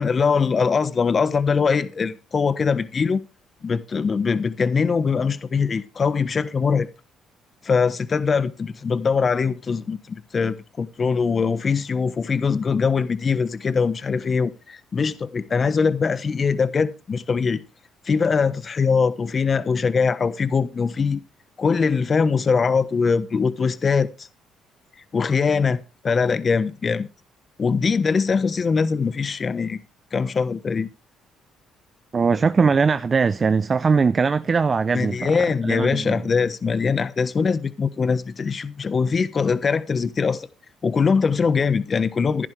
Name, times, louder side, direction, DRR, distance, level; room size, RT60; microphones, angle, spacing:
voice 1, 0.0-3.2 3.6-6.9 7.6-17.6 18.0-21.2 21.6-24.3 25.1-27.1 27.6-29.8 30.1-30.9 34.9-40.5 40.8-42.5, left 5 dB, 40° left, 1.1 m, -22 dB
voice 2, 32.1-35.3 35.6-36.2, right 5 dB, 35° right, 0.6 m, -20 dB
15.0 x 11.0 x 3.4 m
supercardioid pair, 75°, 0 cm